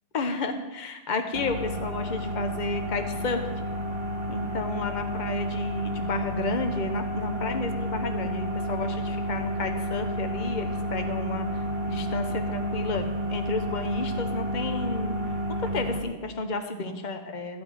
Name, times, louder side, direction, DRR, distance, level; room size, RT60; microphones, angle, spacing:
voice 1, 0.1-3.5 4.3-15.2 15.7-17.6, left 3 dB, 40° left, 6 dB, 0.6 m, -32 dB
sound 1, 1.3-16.0, equal, 65° right, 1.6 m, -31 dB
14.5 x 5.9 x 9.2 m, 1.2 s
omnidirectional pair, 2.4 m